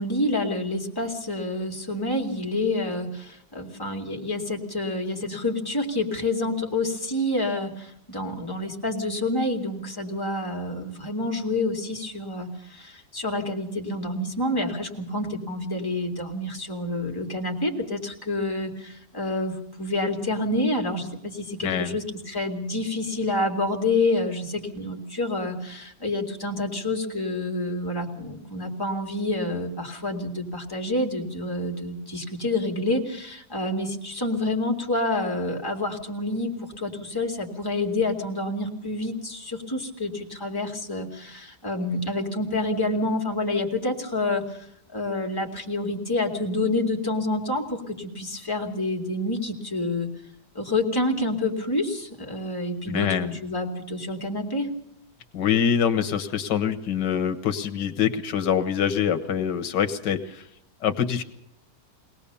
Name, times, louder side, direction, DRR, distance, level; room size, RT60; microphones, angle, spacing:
voice 1, 0.0-44.7 44.9-50.1 50.5-54.7, left 2 dB, 15° left, 1 dB, 2.4 m, -28 dB
voice 2, 21.6-22.0 52.9-53.4 55.3-60.5 60.8-61.2, left 8 dB, 90° left, 8 dB, 1.8 m, -25 dB
22.5 x 18.0 x 6.9 m, 0.71 s
omnidirectional pair, 1.8 m